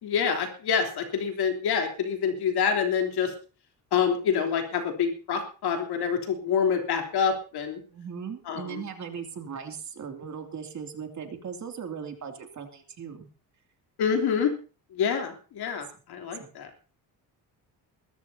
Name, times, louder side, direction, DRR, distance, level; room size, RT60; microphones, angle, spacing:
voice 1, 0.0-3.3 3.9-7.8 8.5-8.8 14.0-14.5 14.9-16.7, left 6 dB, 75° left, 3 dB, 3.3 m, -27 dB
voice 2, 7.9-13.3 16.4-16.5, right 7 dB, 45° right, 4 dB, 2.8 m, -38 dB
21.5 x 13.5 x 2.8 m, 0.36 s
cardioid pair, 140°, 39 cm